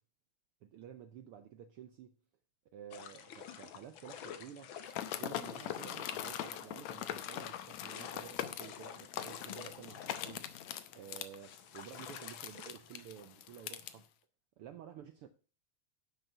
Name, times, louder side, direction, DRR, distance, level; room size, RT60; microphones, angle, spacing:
voice 1, 0.6-2.1 2.7-4.8 5.2-10.6 10.9-14.1 14.6-15.3, right 9 dB, 75° right, 1.3 m, -52 dB
sound 1, 2.9-14.0, left 8 dB, 60° left, 1.3 m, -51 dB
sound 2, 4.9-13.9, left 11 dB, 75° left, 2.1 m, -42 dB
11.0 x 6.5 x 5.6 m
omnidirectional pair, 3.3 m